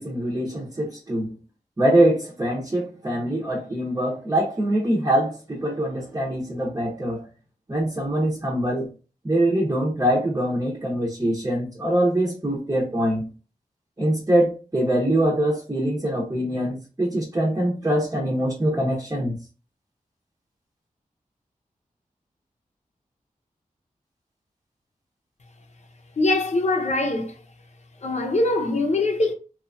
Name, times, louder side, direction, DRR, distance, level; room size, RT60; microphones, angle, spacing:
voice 1, 0.0-1.3 1.8-7.2 7.7-8.9 9.2-13.3 14.0-19.3, right 1 dB, 20° right, 0.8 m, -23 dB
voice 2, 26.2-27.3 28.0-29.3, left 2 dB, 55° left, 0.7 m, -22 dB
2.8 x 2.3 x 2.5 m
wide cardioid pair, 75°, 14 cm